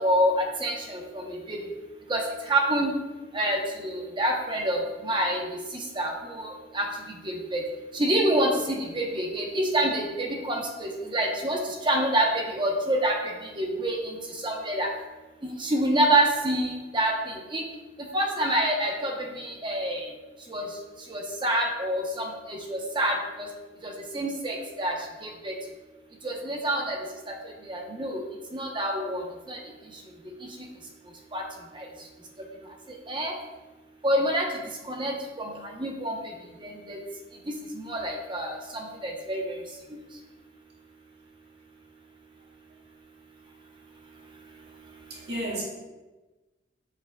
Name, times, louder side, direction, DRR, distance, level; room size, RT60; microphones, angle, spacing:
voice 1, 0.0-1.6 2.1-2.2 2.5-2.9 3.3-5.4 6.0-6.1 6.7-6.9 7.5-7.6 7.9-8.5 8.9-11.6 11.8-13.2 13.6-14.0 14.4-14.9 15.4-17.1 17.5-17.6 18.1-19.1 19.6-20.0 20.5-20.7 21.1-23.5 23.8-24.9 25.2-25.5 26.2-27.0 27.7-28.2 28.5-29.2 29.5-29.6 31.3-31.4 33.1-33.3 34.0-34.5 34.9-35.5 35.8-36.1 36.9-37.0 37.9-38.5 39.0-39.4, right 1 dB, 25° right, 1 dB, 0.9 m, -26 dB
voice 2, 45.1-45.6, right 1 dB, 60° right, -5 dB, 2.0 m, -33 dB
7.3 x 5.9 x 2.3 m, 1.2 s
head